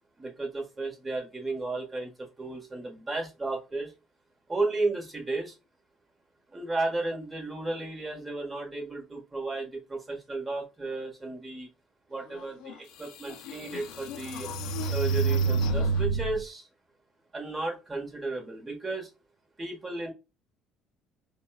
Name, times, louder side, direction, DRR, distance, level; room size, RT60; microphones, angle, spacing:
voice 1, 0.2-3.9 4.5-5.5 6.5-11.7 12.1-14.5 14.9-16.7 17.3-19.1 19.6-20.1, right 2 dB, 20° right, 1 dB, 1.3 m, -33 dB
sound 1, 12.6-12.7 13.3-16.4, right 4 dB, 80° left, 0.4 m, -28 dB
4.1 x 2.2 x 2.3 m, 0.28 s
supercardioid pair, 85°, 0 cm